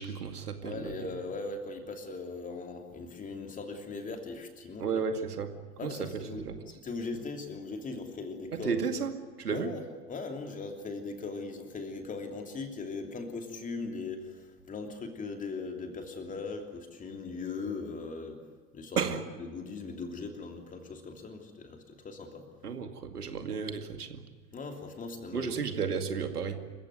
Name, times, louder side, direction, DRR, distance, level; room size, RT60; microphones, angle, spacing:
voice 1, 0.0-0.9 4.8-5.5 5.8-6.6 8.5-9.1 9.4-9.7 19.0-19.2 22.6-24.2 25.3-26.6, right 6 dB, 70° right, 6 dB, 2.4 m, -33 dB
voice 2, 0.6-5.0 5.8-6.4 6.8-8.7 9.5-18.4 18.7-19.2 19.5-22.4 24.5-25.5, left 3 dB, 15° left, 4 dB, 2.9 m, -39 dB
27.5 x 15.5 x 9.5 m, 1.5 s
figure-of-eight pair, 100°, 48 cm